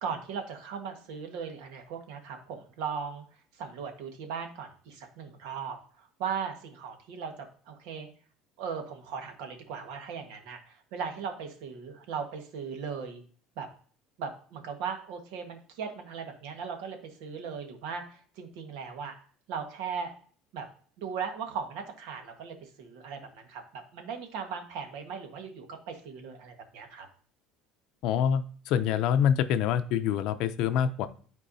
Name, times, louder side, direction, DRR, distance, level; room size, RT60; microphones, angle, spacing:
voice 1, 0.0-3.2 3.5-8.1 8.6-13.2 13.6-13.7 14.2-19.1 19.5-20.1 20.5-20.7 21.0-27.1, right 6 dB, 75° right, 5 dB, 1.5 m, -38 dB
voice 2, 28.0-31.1, left 8 dB, 55° left, 11 dB, 0.5 m, -26 dB
11.5 x 4.5 x 2.7 m, 0.44 s
cardioid pair, 175°, 0 cm